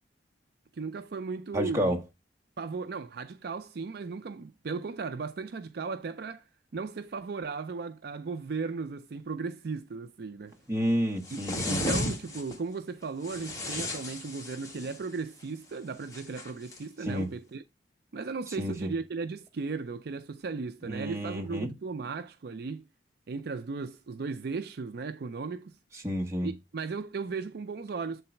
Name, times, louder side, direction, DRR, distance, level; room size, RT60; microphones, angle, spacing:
voice 1, 0.7-2.0 2.6-6.4 6.7-10.5 11.3-17.6 18.1-22.8 23.3-25.7 26.4-28.2, right 4 dB, 60° right, 0.4 m, -36 dB
voice 2, 1.5-2.0 10.7-11.8 17.0-17.3 18.6-18.9 20.9-21.7 25.9-26.5, equal, 15° right, 1.5 m, -30 dB
sound 1, 11.2-12.6 13.2-15.1 16.1-16.8, left 1 dB, 20° left, 1.5 m, -34 dB
8.0 x 3.8 x 4.4 m
head